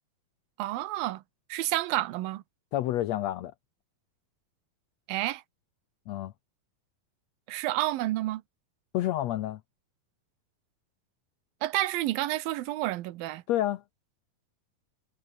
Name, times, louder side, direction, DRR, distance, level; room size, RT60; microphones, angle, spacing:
voice 1, 0.6-1.2 1.5-2.4 5.1-5.4 7.5-8.4 11.6-13.4, right 16 dB, 85° right, 2.7 m, -30 dB
voice 2, 2.7-3.5 6.1-6.3 8.9-9.6 13.5-13.8, left 13 dB, 80° left, 1.5 m, -29 dB
omnidirectional pair, 4.1 m